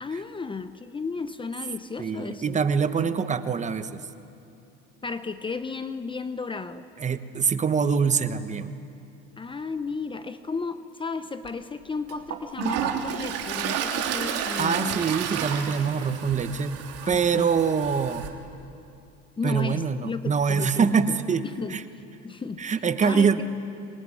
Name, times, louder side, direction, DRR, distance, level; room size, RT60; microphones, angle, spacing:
voice 1, 0.0-2.6 5.0-6.9 9.4-15.0 17.0-17.5 19.4-21.8 22.2-22.6 23.0-23.4, left 4 dB, 15° left, 11 dB, 0.9 m, -34 dB
voice 2, 2.0-4.0 7.0-8.8 14.6-16.8 17.1-18.3 19.4-21.8 22.6-23.4, right 6 dB, 25° right, 10 dB, 1.2 m, -24 dB
Toilet flush, 11.4-11.5 12.1-18.3, right 8 dB, 55° right, 3.2 m, -31 dB
25.5 x 22.0 x 10.0 m, 2.6 s
supercardioid pair, 115°, 29 cm